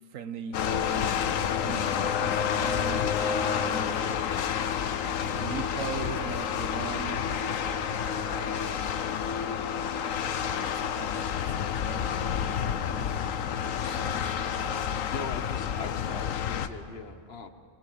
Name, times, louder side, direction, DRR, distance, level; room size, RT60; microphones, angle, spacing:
voice 1, 0.1-1.2 1.6-4.1 5.3-7.3 7.6-8.9 10.6-15.0, right 7 dB, 70° right, 11 dB, 1.2 m, -41 dB
sound 1, 0.5-16.7, left 8 dB, 70° left, 1.2 m, -29 dB
voice 2, 15.1-17.5, left 5 dB, 50° left, 9 dB, 1.1 m, -40 dB
22.0 x 21.5 x 7.8 m, 2.4 s
omnidirectional pair, 1.5 m